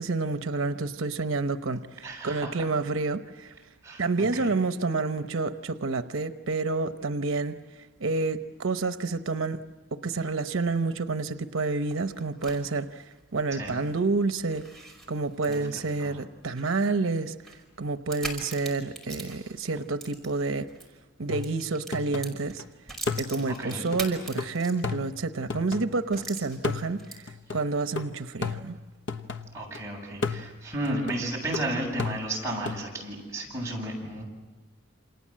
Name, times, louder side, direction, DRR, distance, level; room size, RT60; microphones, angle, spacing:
voice 1, 0.0-3.5 4.0-9.6 9.9-13.0 13.3-14.6 15.1-17.4 17.8-20.7 21.2-22.6 23.2-28.8, right 3 dB, 90° right, 10 dB, 0.9 m, -29 dB
voice 2, 2.0-2.5 3.8-4.5 13.6-13.8 15.5-16.1 23.6-23.8 29.5-34.2, right 1 dB, 15° right, -3 dB, 7.9 m, -33 dB
sound 1, 11.7-20.9 21.2-25.1 25.5-25.6 26.1-27.4, right 2 dB, ahead, 5.3 m, -43 dB
sound 2, 21.3-22.6 23.1-26.2 26.6-29.8 30.2-32.9, left 4 dB, 65° left, 1.2 m, -35 dB
29.0 x 27.5 x 7.6 m, 1.2 s
head